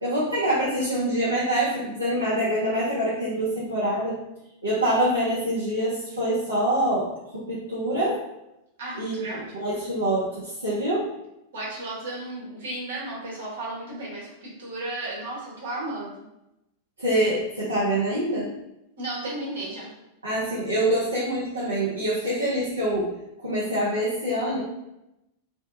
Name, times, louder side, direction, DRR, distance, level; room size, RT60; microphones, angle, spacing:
voice 1, 0.0-4.1 4.6-7.1 7.3-8.2 9.0-11.0 17.0-18.5 20.2-23.1 23.4-24.6, right 1 dB, 80° right, -9 dB, 0.6 m, -25 dB
voice 2, 8.8-9.5 11.5-16.1 19.0-19.9, right 2 dB, 60° right, -6 dB, 1.1 m, -34 dB
2.6 x 2.2 x 2.5 m, 0.89 s
figure-of-eight pair, 90°, 0 cm